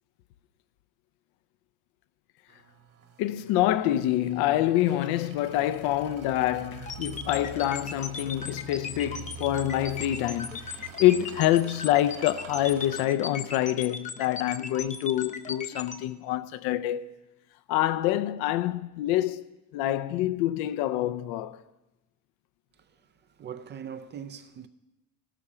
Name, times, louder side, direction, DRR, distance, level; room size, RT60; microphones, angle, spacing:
sound 1, 2.5-13.1, right 7 dB, 50° right, 1.6 m, -46 dB
voice 1, 3.2-17.2 17.7-21.6, left 13 dB, 65° left, 0.7 m, -26 dB
sound 2, 6.9-16.0, left 5 dB, 20° left, 0.7 m, -37 dB
voice 2, 22.8-24.7, right 8 dB, 25° right, 0.4 m, -42 dB
15.5 x 12.5 x 4.9 m
cardioid pair, 145°, 40 cm